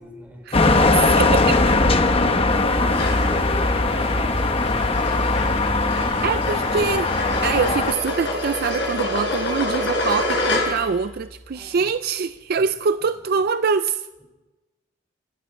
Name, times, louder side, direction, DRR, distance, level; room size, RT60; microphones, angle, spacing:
voice 1, 0.0-6.7 11.5-11.9 12.6-12.7 12.9-13.0, equal, 10° right, 1 dB, 4.2 m, -41 dB
sound 1, 0.5-7.9, left 2 dB, 30° left, 1.0 m, -20 dB
voice 2, 0.9-1.6 6.2-7.2 7.4-14.1, right 5 dB, 50° right, 11 dB, 0.4 m, -24 dB
sound 2, 2.9-11.0, left 1 dB, 60° left, 4.7 m, -27 dB
26.5 x 12.5 x 4.4 m, 1.1 s
head